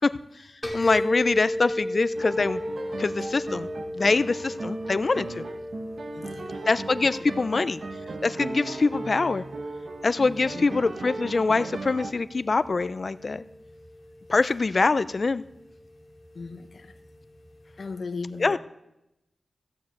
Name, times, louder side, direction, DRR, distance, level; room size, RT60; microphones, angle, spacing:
sound 1, 0.6-18.0, left 1 dB, 10° left, 2.8 m, -37 dB
voice 1, 0.7-2.6 3.0-3.7 3.9-5.4 6.7-7.8 8.2-9.4 10.0-13.4 14.3-15.4 18.4-18.6, left 3 dB, 45° left, 0.5 m, -24 dB
sound 2, 2.2-12.1, right 3 dB, 65° right, 1.2 m, -37 dB
voice 2, 6.1-6.6 10.5-10.7 16.3-17.0 17.8-18.6, left 4 dB, 65° left, 1.0 m, -37 dB
15.0 x 9.3 x 7.7 m
wide cardioid pair, 95°, 0 cm